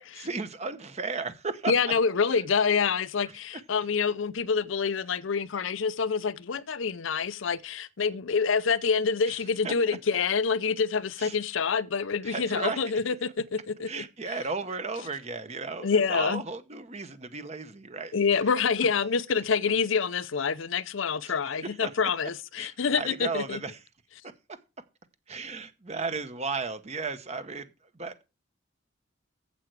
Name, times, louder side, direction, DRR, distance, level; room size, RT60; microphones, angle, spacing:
voice 1, 0.0-1.9 2.3-2.4 3.3-3.4 9.3-10.0 11.2-11.4 12.2-12.8 13.9-18.1 18.4-18.6 21.2-21.9 22.6-23.8 24.2-24.3 25.3-27.7 27.9-28.3, right 4 dB, 35° right, 0.9 m, -35 dB
voice 2, 1.7-14.0 15.8-16.4 18.1-23.6, left 5 dB, 70° left, 0.6 m, -27 dB
8.4 x 7.9 x 4.7 m
head